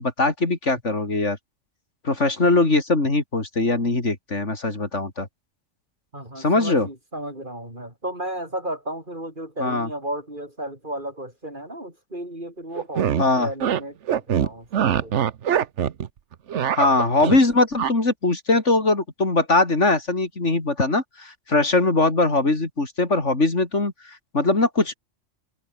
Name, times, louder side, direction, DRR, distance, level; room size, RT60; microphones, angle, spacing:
voice 1, 0.0-1.4 2.0-5.3 6.4-6.9 9.6-9.9 13.2-13.5 16.7-25.0, left 2 dB, 65° left, 4.0 m, -21 dB
voice 2, 6.1-15.2, right 1 dB, 40° right, 7.5 m, -34 dB
sound 1, 12.8-13.2 13.6-13.8 14.1-16.1 16.3-17.4 17.8-17.9, right 9 dB, 65° right, 1.2 m, -22 dB
omnidirectional pair, 1.3 m